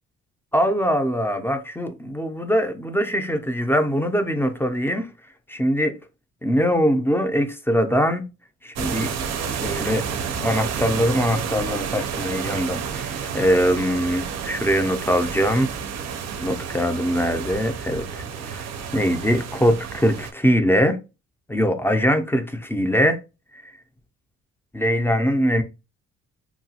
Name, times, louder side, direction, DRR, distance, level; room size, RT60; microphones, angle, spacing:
voice 1, 0.5-5.1 5.5-5.9 6.4-8.2 8.6-9.1 9.6-10.0 10.4-15.7 16.4-18.2 18.5-18.6 18.9-21.0 21.5-23.2 24.7-25.6, equal, 10° left, 0.5 m, -22 dB
sound 1, 8.8-20.3, right 6 dB, 60° right, 0.5 m, -30 dB
2.9 x 2.3 x 2.7 m
cardioid pair, 90°, 30 cm